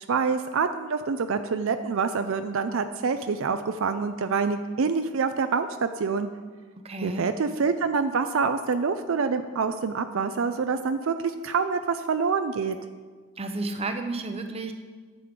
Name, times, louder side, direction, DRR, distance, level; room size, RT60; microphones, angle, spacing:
voice 1, 0.0-6.3 7.0-12.8, right 5 dB, 65° right, 9 dB, 0.4 m, -26 dB
voice 2, 6.8-7.3 13.4-14.7, right 2 dB, 25° right, 6 dB, 0.7 m, -32 dB
11.5 x 7.6 x 5.1 m, 1.5 s
head